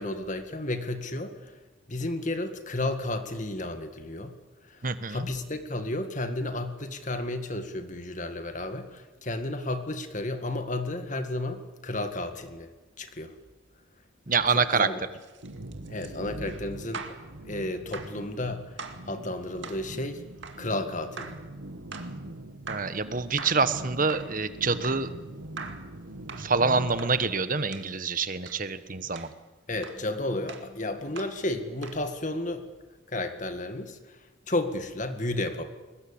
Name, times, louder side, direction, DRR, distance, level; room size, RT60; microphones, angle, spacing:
voice 1, 0.0-1.5 1.9-4.4 4.6-4.8 5.1-12.7 13.0-13.3 14.5-15.0 15.9-17.2 17.4-18.8 19.1-20.2 20.6-21.4 29.7-32.7 33.1-34.2 34.5-35.6, left 2 dB, 40° left, 8 dB, 1.9 m, -32 dB
voice 2, 4.8-5.3 14.3-14.9 22.7-25.1 26.4-29.3, right 4 dB, 40° right, 12 dB, 1.3 m, -26 dB
sound 1, 15.1-17.3 17.9-18.2 18.8-19.1 19.6-19.9 20.4-20.6 21.2-21.5 21.9-22.2 22.7-23.0 23.4-23.7 24.1-24.4 24.8-25.1 25.6-25.9 26.3-26.5 27.0-27.2 27.7-27.9 28.5-28.6 29.1-29.4 29.8-30.0 30.5-30.7 31.2-31.4 31.8-32.0, right 4 dB, 60° right, 2.3 m, -42 dB
sound 2, 15.4-27.3, right 1 dB, 90° right, 1.8 m, -42 dB
22.0 x 20.5 x 8.7 m, 1.2 s
head